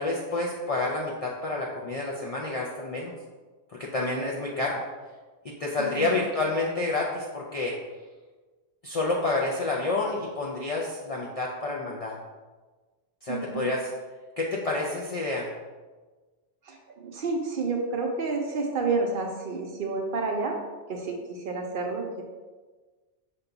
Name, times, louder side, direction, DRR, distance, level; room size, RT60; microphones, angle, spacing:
voice 1, 0.0-3.1 3.7-4.8 5.4-7.7 8.8-12.2 13.2-13.9 14.4-15.5, left 2 dB, 55° left, -3 dB, 0.4 m, -29 dB
voice 2, 5.8-6.2 13.3-13.7 16.7-20.5 20.9-22.2, right 3 dB, 60° right, 2 dB, 0.7 m, -30 dB
5.2 x 2.3 x 3.8 m, 1.3 s
omnidirectional pair, 1.1 m